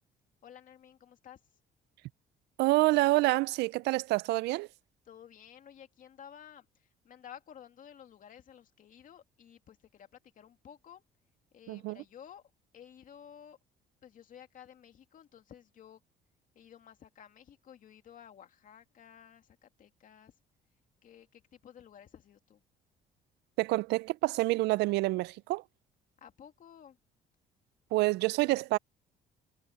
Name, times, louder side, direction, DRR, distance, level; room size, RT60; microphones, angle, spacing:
voice 1, 0.4-1.4 5.1-10.1 10.3-11.0 11.5-12.4 12.7-13.6 14.0-16.0 16.5-20.3 21.0-22.6 26.2-27.0, left 9 dB, 50° left, 2.4 m, -53 dB
voice 2, 2.6-4.7 11.7-12.0 23.6-25.6 27.9-28.8, right 21 dB, 80° right, 0.4 m, -27 dB
cardioid pair, 110°, 17 cm